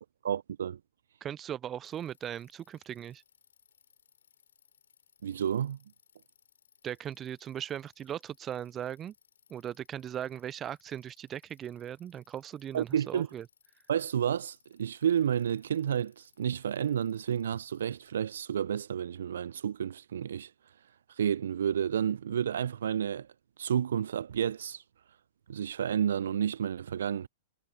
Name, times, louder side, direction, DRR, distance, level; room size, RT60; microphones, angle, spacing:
voice 1, 0.2-0.8 5.2-5.8 12.7-13.3 13.9-20.5 21.2-23.3 23.6-24.8 25.5-27.3, right 9 dB, 65° right, 0.8 m, -30 dB
voice 2, 1.2-3.2 6.8-9.1 9.5-13.5, right 10 dB, 25° right, 0.5 m, -38 dB
Bicycle, 1.8-18.1, left 7 dB, 70° left, 7.2 m, -67 dB
figure-of-eight pair, 105°, 0 cm